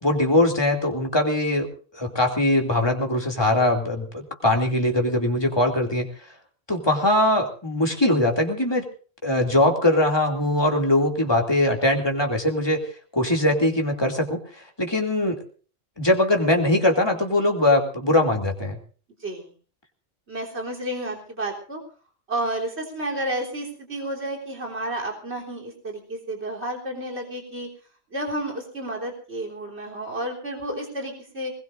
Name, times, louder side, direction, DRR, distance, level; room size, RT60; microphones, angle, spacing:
voice 1, 0.0-1.7 1.9-6.1 6.7-8.8 9.2-12.8 13.1-15.4 16.0-18.8, left 1 dB, 20° left, 2 dB, 2.8 m, -21 dB
voice 2, 19.2-19.5 20.3-21.8 22.3-27.7 28.1-31.5, right 1 dB, 60° right, -1 dB, 3.9 m, -31 dB
22.5 x 20.0 x 2.6 m, 0.39 s
omnidirectional pair, 1.3 m